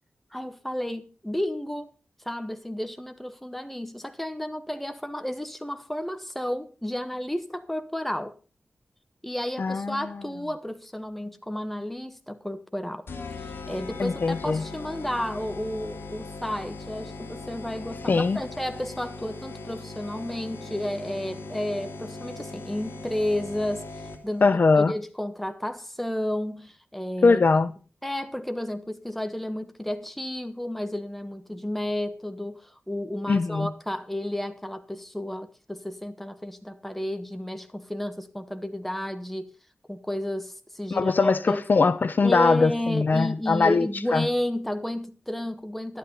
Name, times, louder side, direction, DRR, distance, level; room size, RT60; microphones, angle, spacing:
voice 1, 0.3-1.9 2.2-8.3 9.2-13.1 13.4-24.4 24.8-27.4 28.0-39.5 39.9-41.6 42.2-46.0, left 1 dB, 5° left, 1.3 m, -32 dB
voice 2, 9.6-10.1 14.0-14.6 18.1-18.4 24.4-24.9 27.2-27.7 33.3-33.7 40.9-43.9 44.1-44.3, left 4 dB, 55° left, 0.8 m, -21 dB
sound 1, 13.1-24.5, left 3 dB, 80° left, 2.4 m, -39 dB
12.5 x 11.5 x 5.5 m
wide cardioid pair, 115°, 4 cm